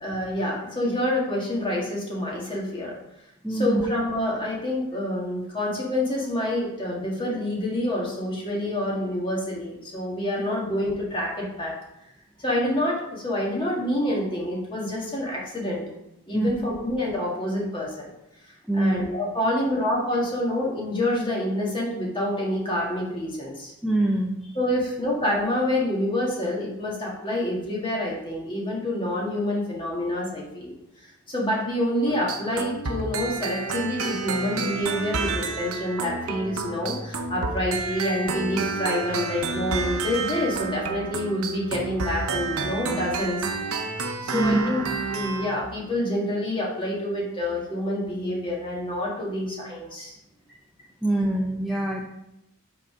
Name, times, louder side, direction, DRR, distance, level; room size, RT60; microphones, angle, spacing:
voice 1, 0.0-3.0 3.5-11.8 12.4-15.8 16.3-18.1 18.7-23.7 24.6-30.7 31.3-43.5 43.7-43.9 44.2-44.8 45.1-50.1, left 1 dB, 20° left, -4 dB, 1.7 m, -27 dB
voice 2, 3.4-3.8 16.3-16.5 18.7-19.0 23.8-24.5 44.3-44.7 51.0-52.0, right 2 dB, ahead, -2 dB, 0.5 m, -24 dB
sound 1, 32.1-45.6, right 4 dB, 75° right, 0.8 m, -30 dB
5.9 x 3.9 x 5.9 m, 0.86 s
head